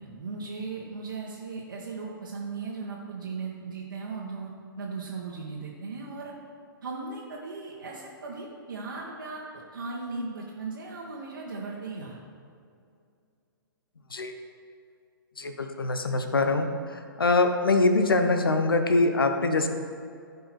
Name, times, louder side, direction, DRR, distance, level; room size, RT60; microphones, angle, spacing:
voice 1, 0.0-6.3 6.8-9.4 9.7-12.2, right 4 dB, 65° right, -5 dB, 1.5 m, -37 dB
voice 2, 15.4-16.7 17.2-19.7, left 3 dB, 75° left, 7 dB, 1.0 m, -23 dB
14.5 x 5.5 x 4.3 m, 2.4 s
figure-of-eight pair, 120°, 12 cm